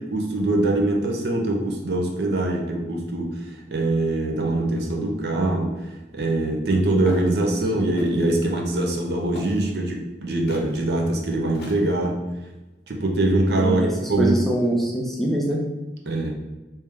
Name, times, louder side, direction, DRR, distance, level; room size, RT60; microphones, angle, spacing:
voice 1, 0.1-3.3 3.7-5.7 6.1-12.2 12.9-13.8 14.1-14.6 16.1-16.3, right 2 dB, 70° right, 1 dB, 0.6 m, -23 dB
Walk footsteps, 7.0-7.3 8.0-8.3 9.4-9.7 10.5-10.7 11.5-12.0, left 1 dB, 65° left, 0.7 m, -36 dB
voice 2, 13.5-15.6, right 1 dB, ahead, -3 dB, 0.5 m, -24 dB
3.5 x 2.8 x 3.3 m, 1.1 s
head